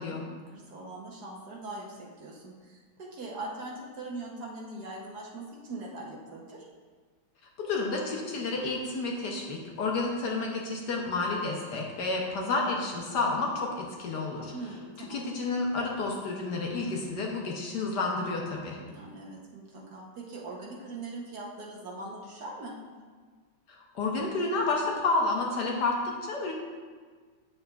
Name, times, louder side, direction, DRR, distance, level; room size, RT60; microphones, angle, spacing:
voice 1, 0.0-6.6 14.5-15.3 18.8-22.8, right 2 dB, 60° right, -3 dB, 1.3 m, -41 dB
voice 2, 7.6-14.5 15.1-18.8 23.9-26.5, left 3 dB, 65° left, -1 dB, 1.2 m, -30 dB
8.1 x 6.7 x 2.3 m, 1.5 s
omnidirectional pair, 2.2 m